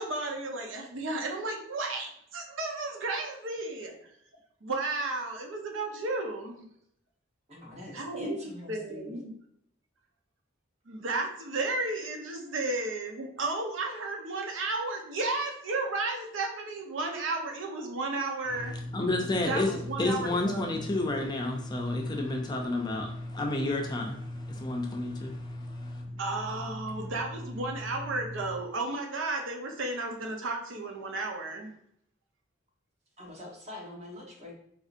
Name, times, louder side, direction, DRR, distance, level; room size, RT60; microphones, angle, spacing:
voice 1, 0.0-4.0 4.6-6.7 7.9-8.4 8.7-9.3 10.9-18.7 19.5-20.8 26.2-31.7, right 2 dB, 75° right, 0.6 m, -33 dB
voice 2, 7.5-9.2 33.2-34.5, left 1 dB, 35° right, 1.0 m, -43 dB
voice 3, 18.5-26.2 26.9-27.1 27.5-27.6, left 2 dB, 20° left, 0.4 m, -31 dB
4.1 x 2.7 x 2.5 m
head